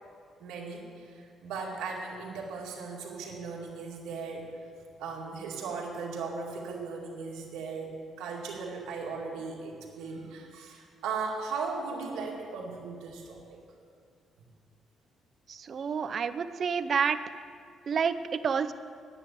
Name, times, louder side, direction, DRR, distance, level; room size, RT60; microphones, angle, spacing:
voice 1, 0.4-4.5 5.0-13.6, right 4 dB, 85° right, -2 dB, 2.1 m, -37 dB
voice 2, 15.5-17.2 17.9-18.7, right 6 dB, 50° right, 12 dB, 0.6 m, -29 dB
10.0 x 8.0 x 8.5 m, 2.3 s
cardioid pair, 90°, 0 cm